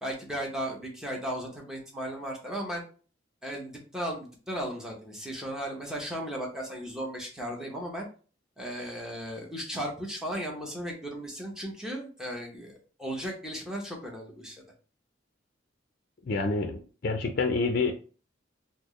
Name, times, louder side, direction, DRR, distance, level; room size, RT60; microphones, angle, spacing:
voice 1, 0.0-2.8 3.4-8.1 8.6-14.6, equal, 5° right, -2 dB, 0.8 m, -36 dB
voice 2, 16.3-17.9, left 3 dB, 50° left, 5 dB, 0.4 m, -28 dB
4.2 x 2.1 x 3.0 m, 0.38 s
head